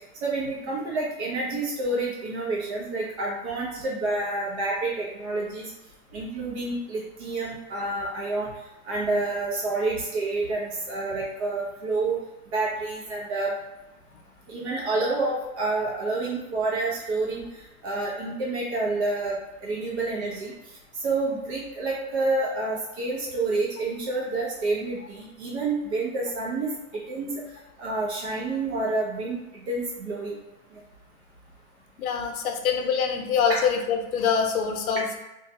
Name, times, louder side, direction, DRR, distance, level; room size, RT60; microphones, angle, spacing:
voice 1, 0.2-5.7 6.1-8.5 8.8-12.2 12.5-13.5 14.5-17.4 17.8-20.5 21.0-26.7 27.1-27.3 27.8-30.4 33.5-33.6, right 2 dB, 50° right, -4 dB, 0.7 m, -28 dB
voice 2, 32.0-35.2, left 6 dB, 80° left, 3 dB, 0.6 m, -25 dB
2.3 x 2.2 x 2.7 m, 1.0 s
hypercardioid pair, 150°, 43 cm